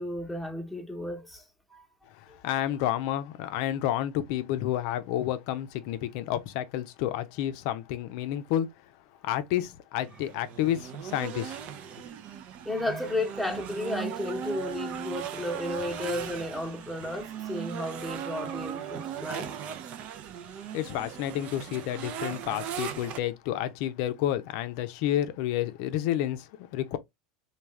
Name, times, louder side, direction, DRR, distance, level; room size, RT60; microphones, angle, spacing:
voice 1, 0.0-1.9 2.3-2.4 12.6-19.5, left 1 dB, ahead, 0.9 m, -33 dB
voice 2, 2.1-8.7 9.2-11.6 20.7-27.0, left 12 dB, 60° left, 0.5 m, -30 dB
sound 1, 10.0-23.2, right 9 dB, 50° right, 0.5 m, -38 dB
3.4 x 2.3 x 3.1 m
hypercardioid pair, 90°, 3 cm